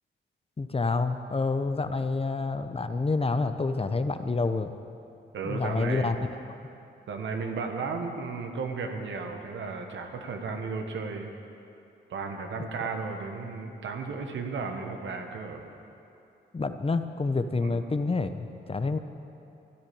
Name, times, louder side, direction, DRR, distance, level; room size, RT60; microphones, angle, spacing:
voice 1, 0.6-4.8 5.4-6.3 16.5-19.0, left 3 dB, 30° left, 9 dB, 0.9 m, -28 dB
voice 2, 5.3-6.1 7.1-11.3 12.1-15.6 17.6-17.8, right 4 dB, 80° right, 4 dB, 1.5 m, -34 dB
13.5 x 10.5 x 8.7 m, 2.7 s
cardioid pair, 65°, 19 cm